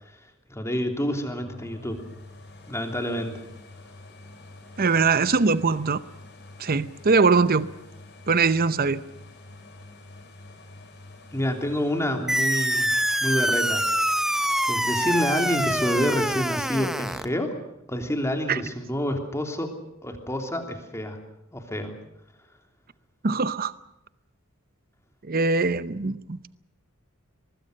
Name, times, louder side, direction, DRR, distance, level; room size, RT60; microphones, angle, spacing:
voice 1, 0.5-2.0 2.7-3.4 11.3-12.9 13.2-13.9 14.7-17.5 17.9-19.7 20.0-21.2 21.5-21.9, equal, 15° left, 4 dB, 3.1 m, -28 dB
sound 1, 1.4-15.1 15.6-15.7, left 2 dB, 55° left, 6.5 m, -47 dB
voice 2, 4.8-6.0 6.6-7.7 8.3-9.0 18.5-18.6 23.2-23.7 25.3-26.5, right 4 dB, 45° right, 15 dB, 0.7 m, -22 dB
sound 2, 12.3-17.3, equal, ahead, 0.8 m, -25 dB
24.0 x 20.5 x 6.6 m, 0.84 s
head